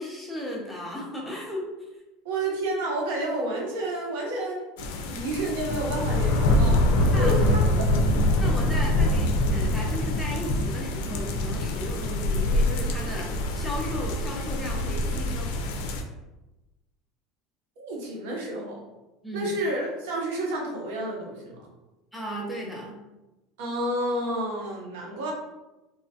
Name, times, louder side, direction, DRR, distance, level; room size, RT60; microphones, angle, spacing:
voice 1, 0.0-1.9 7.1-7.3 8.4-15.6 19.2-19.5 22.1-23.0, equal, ahead, -4 dB, 0.6 m, -35 dB
voice 2, 2.2-4.7 5.0-6.8 7.2-7.6 17.8-18.8 19.3-21.6 23.6-25.3, right 1 dB, 85° right, -1 dB, 0.8 m, -30 dB
sound 1, 4.8-16.0, left 1 dB, 85° left, 0.4 m, -24 dB
2.9 x 2.2 x 2.7 m, 1.0 s
supercardioid pair, 140°, 0 cm